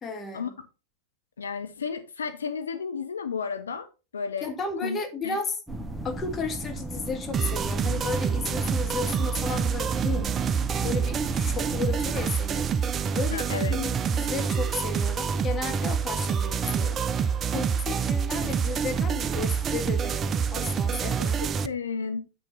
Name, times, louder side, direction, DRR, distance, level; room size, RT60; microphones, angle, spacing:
voice 1, 0.0-0.5 4.4-5.5 6.0-10.4 10.8-12.7 13.1-13.4 13.7-17.0 17.5-21.4, left 4 dB, 20° left, 1.7 m, -33 dB
voice 2, 1.4-3.9 4.1-4.5 4.8-5.0 5.2-5.4 13.3-13.8 21.2-21.3 21.6-22.2, left 6 dB, 70° left, 0.7 m, -32 dB
sound 1, 5.7-12.3, right 1 dB, 5° right, 0.9 m, -36 dB
sound 2, 7.3-21.7, right 6 dB, 25° right, 0.5 m, -27 dB
8.5 x 6.2 x 4.1 m
figure-of-eight pair, 90°, 0 cm